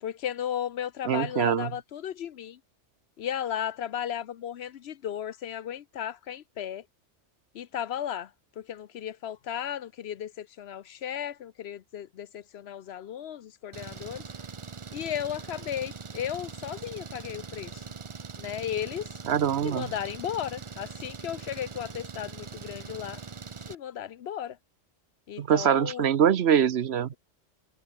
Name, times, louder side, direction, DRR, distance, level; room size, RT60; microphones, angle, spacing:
voice 1, 0.0-2.6 3.2-6.8 7.5-8.3 8.6-14.2 14.9-17.8 18.4-19.1 19.6-23.2 23.7-24.6 25.3-26.1, left 10 dB, 65° left, 0.9 m, -35 dB
voice 2, 1.0-1.7 19.3-19.9 25.4-27.1, right 9 dB, 65° right, 1.1 m, -23 dB
Engine, 13.7-23.7, right 5 dB, 30° right, 0.7 m, -42 dB
omnidirectional pair, 1.2 m